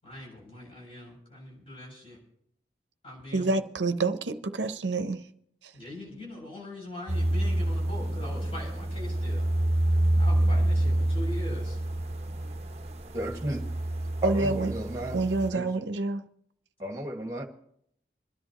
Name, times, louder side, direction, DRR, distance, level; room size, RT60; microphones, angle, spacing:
voice 1, 0.0-2.2 3.0-3.6 5.7-9.5 10.1-11.8, left 1 dB, 30° left, 7.3 m, -42 dB
voice 2, 3.3-5.2 5.6-5.7 14.2-14.7 15.1-16.3, right 3 dB, 90° right, 0.8 m, -28 dB
sound 1, 7.1-15.5, right 1 dB, 35° right, 0.9 m, -27 dB
voice 3, 13.1-13.6 14.2-15.2 15.5-15.7 16.8-17.4, right 1 dB, 20° right, 1.8 m, -33 dB
26.5 x 11.0 x 3.0 m
head